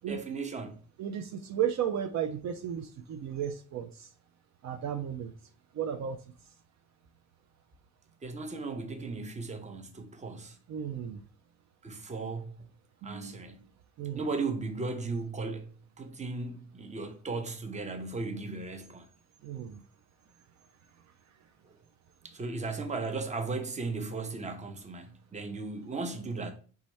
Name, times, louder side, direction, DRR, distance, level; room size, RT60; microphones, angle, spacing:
voice 1, 0.1-0.8 8.2-10.6 11.8-12.5 13.0-13.7 14.2-15.7 16.0-19.1 22.2-26.5, right 3 dB, 25° right, 0.7 m, -36 dB
voice 2, 1.0-4.1 4.6-5.3 5.7-6.2 10.7-11.2 13.0-13.6 14.0-14.2 19.4-19.8, right 9 dB, 65° right, 0.5 m, -34 dB
4.1 x 3.6 x 3.2 m
cardioid pair, 90°, 30 cm